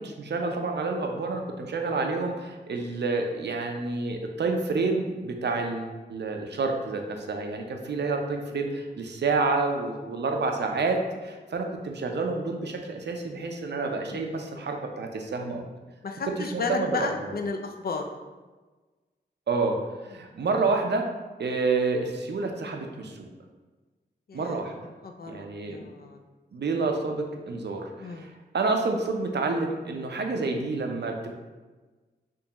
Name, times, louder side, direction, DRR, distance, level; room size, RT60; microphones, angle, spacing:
voice 1, 0.0-15.6 16.4-17.3 19.5-19.8 20.1-21.1 21.4-23.3 24.3-24.7 25.3-25.9 26.5-28.3 28.5-31.3, right 3 dB, 70° right, 3 dB, 0.5 m, -29 dB
voice 2, 16.0-18.0 24.3-24.6 25.0-26.2 28.0-28.3, left 4 dB, 55° left, 4 dB, 0.5 m, -33 dB
3.5 x 3.1 x 2.9 m, 1.3 s
cardioid pair, 55°, 18 cm